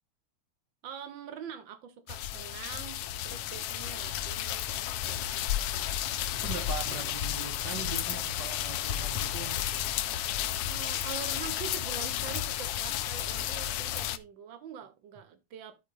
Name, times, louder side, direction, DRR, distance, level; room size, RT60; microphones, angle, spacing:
voice 1, 0.8-4.7 5.0-5.4 10.6-15.8, right 8 dB, 85° right, 1.0 m, -44 dB
sound 1, 2.1-14.2, left 12 dB, 85° left, 1.3 m, -32 dB
voice 2, 6.3-9.7, right 7 dB, 55° right, 1.3 m, -40 dB
11.5 x 4.7 x 4.0 m
omnidirectional pair, 3.4 m